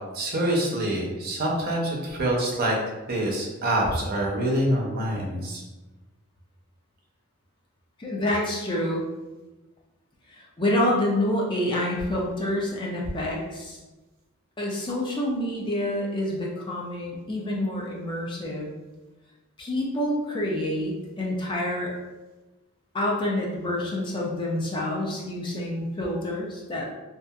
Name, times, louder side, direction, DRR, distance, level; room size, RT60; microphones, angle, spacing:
voice 1, 0.1-2.8 3.1-5.6, right 1 dB, 45° right, -2 dB, 0.5 m, -26 dB
voice 2, 8.0-9.0 10.3-13.8 14.6-18.7 19.6-21.9 22.9-26.9, left 1 dB, 20° left, -3 dB, 0.4 m, -27 dB
2.7 x 2.3 x 2.3 m, 1.1 s
head